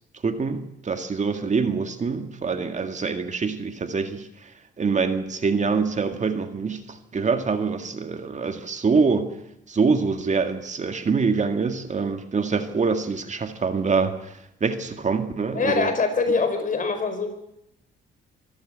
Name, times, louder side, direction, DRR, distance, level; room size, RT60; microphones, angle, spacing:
voice 1, 0.2-9.3 9.7-15.9, right 5 dB, 35° right, 7 dB, 2.0 m, -25 dB
voice 2, 15.5-17.3, left 4 dB, 40° left, 7 dB, 4.8 m, -23 dB
24.0 x 13.5 x 8.7 m, 0.78 s
cardioid pair, 90°, 20 cm